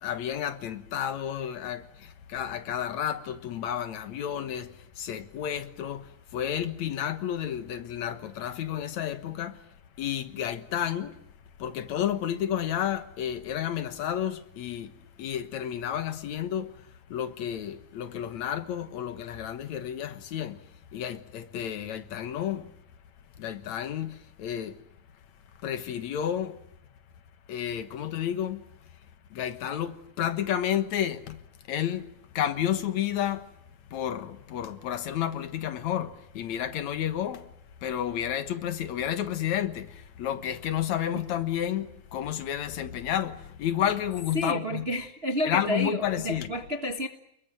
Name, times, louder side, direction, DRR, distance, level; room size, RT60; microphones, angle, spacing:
voice 1, 0.0-9.6 10.0-11.2 11.6-20.6 20.9-22.7 23.4-24.8 25.6-26.6 27.5-28.6 29.3-31.4 31.7-32.1 32.3-33.5 33.9-37.5 37.8-44.8 45.5-46.5, left 10 dB, 65° left, 2.5 m, -31 dB
voice 2, 44.3-47.1, equal, 30° right, 1.1 m, -30 dB
30.0 x 21.5 x 7.6 m
omnidirectional pair, 3.5 m